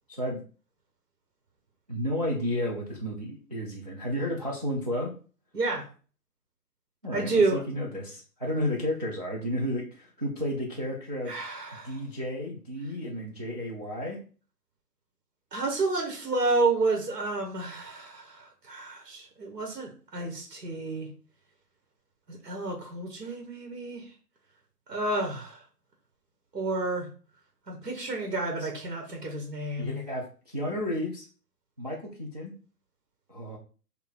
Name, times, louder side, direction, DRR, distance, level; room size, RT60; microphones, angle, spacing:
voice 1, 0.1-0.4 1.9-5.1 7.0-11.4 11.8-14.2 28.6-28.7 29.8-31.3 31.8-32.5 33.3-33.6, equal, 25° right, -2 dB, 0.4 m, -32 dB
voice 2, 5.5-5.8 7.1-7.6 11.3-12.0 15.5-21.1 22.3-24.0 24.9-25.6 26.5-27.1 27.7-30.0, right 3 dB, 80° right, 2 dB, 1.5 m, -30 dB
4.3 x 2.6 x 4.5 m, 0.39 s
figure-of-eight pair, 140°, 49 cm